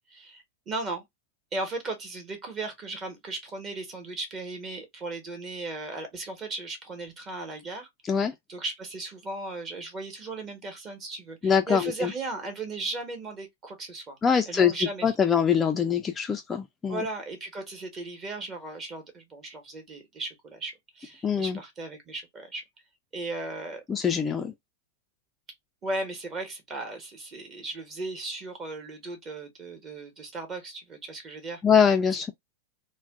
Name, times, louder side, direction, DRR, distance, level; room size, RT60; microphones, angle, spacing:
voice 1, 0.1-1.0 1.5-7.9 8.5-14.2 14.5-15.1 16.9-22.6 23.1-23.8 25.8-31.6, right 2 dB, 25° right, 1.1 m, -36 dB
voice 2, 11.4-12.1 14.2-14.7 15.0-17.0 21.2-21.6 23.9-24.5 31.6-32.3, left 7 dB, 15° left, 0.3 m, -23 dB
2.4 x 2.2 x 3.4 m
supercardioid pair, 140°, 0 cm